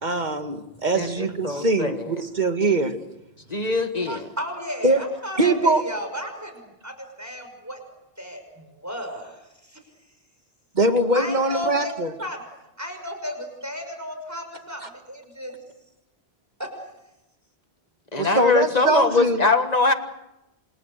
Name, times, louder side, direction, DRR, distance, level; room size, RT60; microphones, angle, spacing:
voice 1, 0.0-2.9 4.1-4.2 4.8-5.0 5.4-5.8 10.8-12.1 14.8-14.9 18.2-19.4, right 2 dB, 45° right, 7 dB, 2.0 m, -22 dB
voice 2, 0.9-2.2 3.5-4.3 18.1-19.9, left 3 dB, 40° left, 8 dB, 1.7 m, -22 dB
voice 3, 3.4-3.7 4.1-7.8 8.2-9.8 11.1-12.4 12.8-15.6 16.6-16.7, equal, 15° right, 6 dB, 5.7 m, -34 dB
28.5 x 27.5 x 6.8 m, 0.93 s
omnidirectional pair, 1.1 m